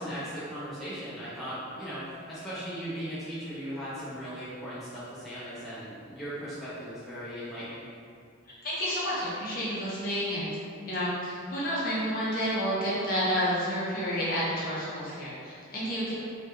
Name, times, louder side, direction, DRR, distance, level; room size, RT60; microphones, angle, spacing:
voice 1, 0.0-7.9, equal, ahead, -12 dB, 0.4 m, -38 dB
voice 2, 8.6-10.5 10.9-16.1, equal, 45° left, -8 dB, 0.6 m, -30 dB
2.2 x 2.1 x 2.9 m, 2.3 s
head